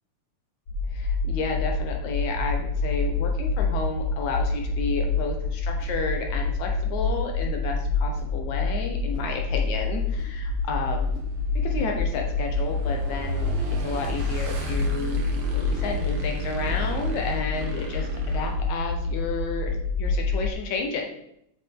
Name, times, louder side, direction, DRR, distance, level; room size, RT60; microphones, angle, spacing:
sound 1, 0.7-20.5, left 3 dB, 50° left, 1.3 m, -27 dB
voice 1, 0.9-11.1 11.6-15.2 15.5-19.7 20.0-21.0, left 4 dB, 70° left, 2 dB, 2.0 m, -31 dB
sound 2, 5.8-6.0 7.1-7.3 8.1-8.4 9.1-9.4 10.1-10.4 11.1-11.4 12.1-12.3 13.0-13.2 13.9-14.2 14.7-14.9 15.5-15.7 16.7-16.9 17.5-17.8, right 1 dB, 40° right, 1.2 m, -48 dB
Motorcycle / Engine, 9.6-19.3, right 5 dB, 70° right, 1.1 m, -38 dB
7.1 x 6.4 x 3.7 m, 0.76 s
omnidirectional pair, 3.7 m